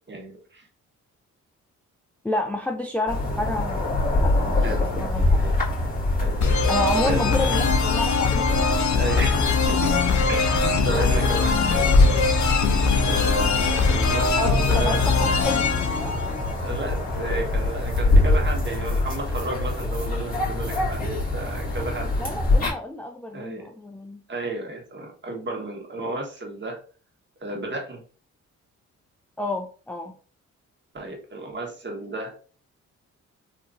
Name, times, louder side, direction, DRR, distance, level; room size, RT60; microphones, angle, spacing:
voice 1, 0.1-0.7 4.6-4.9 5.3-5.5 6.2-7.7 9.0-9.9 10.3-12.3 13.0-15.4 16.6-22.1 23.3-23.7 24.3-26.8 27.4-28.0 30.9-32.3, right 2 dB, 35° right, 0 dB, 1.3 m, -33 dB
voice 2, 2.2-3.9 4.2-4.6 4.9-5.4 6.7-8.7 14.4-16.2 22.2-24.2 29.4-30.1, left 2 dB, 5° left, 4 dB, 0.4 m, -30 dB
sound 1, 3.1-22.7, left 2 dB, 25° left, 1.7 m, -25 dB
sound 2, 6.4-17.0, left 4 dB, 65° left, 0.7 m, -22 dB
3.6 x 2.8 x 2.5 m, 0.40 s
cardioid pair, 75°, 31 cm